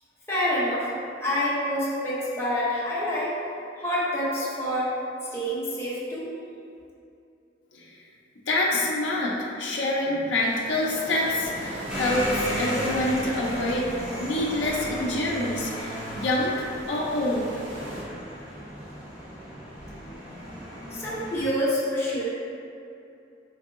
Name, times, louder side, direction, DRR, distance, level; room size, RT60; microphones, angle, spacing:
voice 1, 0.3-0.9 1.2-3.4 3.8-4.9 5.3-6.3 20.9-22.3, equal, 15° left, -9 dB, 0.8 m, -27 dB
voice 2, 8.5-13.9 14.2-17.5, left 1 dB, 75° left, -4 dB, 0.5 m, -26 dB
sound 1, 10.3-18.0, right 1 dB, 85° right, 0.8 m, -42 dB
sound 2, 11.9-21.5, equal, 5° right, 1.1 m, -35 dB
4.6 x 2.6 x 2.4 m, 2.6 s
head